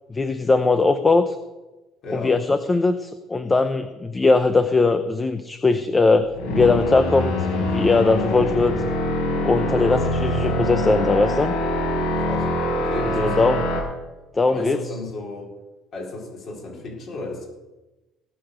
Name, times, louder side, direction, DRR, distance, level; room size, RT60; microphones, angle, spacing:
voice 1, 0.1-1.4 2.1-8.8 9.4-11.5 13.2-13.6 14.3-14.8, left 3 dB, 20° left, 10 dB, 0.7 m, -20 dB
voice 2, 2.0-2.4 12.2-12.5 12.8-13.5 14.4-15.5 15.9-17.5, left 2 dB, 45° left, -2 dB, 4.6 m, -34 dB
sound 1, 6.1-13.8, left 1 dB, 90° left, 4.9 m, -24 dB
18.0 x 6.8 x 6.6 m, 1.1 s
cardioid pair, 125°, 0 cm